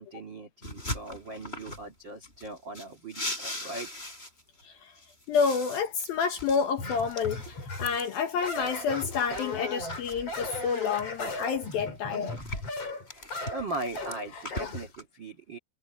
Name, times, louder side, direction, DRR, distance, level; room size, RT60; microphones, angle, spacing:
voice 1, 0.0-3.9 13.5-15.6, right 2 dB, 75° right, 1.0 m, -39 dB
sound 1, 0.6-1.9 2.2-4.6 5.0-9.5 9.9-11.7 12.1-15.0, left 1 dB, 10° left, 7.8 m, -40 dB
voice 2, 5.3-12.4, left 6 dB, 70° left, 2.5 m, -29 dB
sound 2, 6.8-8.0 8.4-14.9, left 2 dB, 30° left, 5.8 m, -37 dB
omnidirectional pair, 5.7 m